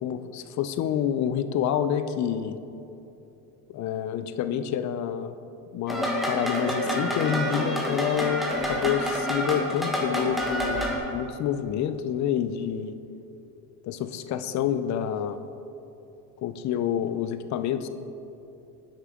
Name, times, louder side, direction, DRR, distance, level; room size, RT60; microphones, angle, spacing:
voice 1, 0.0-2.6 3.7-5.4 5.7-12.9 13.8-15.4 16.4-17.9, left 9 dB, 45° left, 11 dB, 0.5 m, -28 dB
sound 1, 5.9-11.0, equal, ahead, 1.2 m, -28 dB
9.9 x 5.6 x 3.7 m, 2.8 s
supercardioid pair, 95°, 41 cm